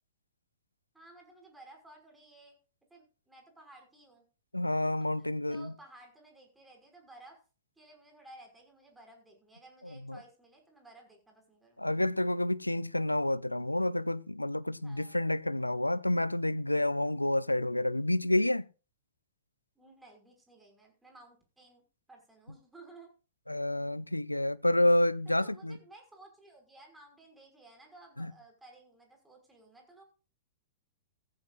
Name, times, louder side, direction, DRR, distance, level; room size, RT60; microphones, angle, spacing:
voice 1, 0.9-2.6 2.9-4.3 5.0-7.4 7.8-11.9 14.8-15.2 19.8-21.8 22.1-23.1 25.3-30.0, right 2 dB, 5° right, 5.9 m, -56 dB
voice 2, 4.5-5.7 10.1-10.2 11.8-18.7 23.5-25.8 28.2-28.3, left 1 dB, 90° left, 0.5 m, -29 dB
17.0 x 14.5 x 2.6 m
figure-of-eight pair, 100°, 0 cm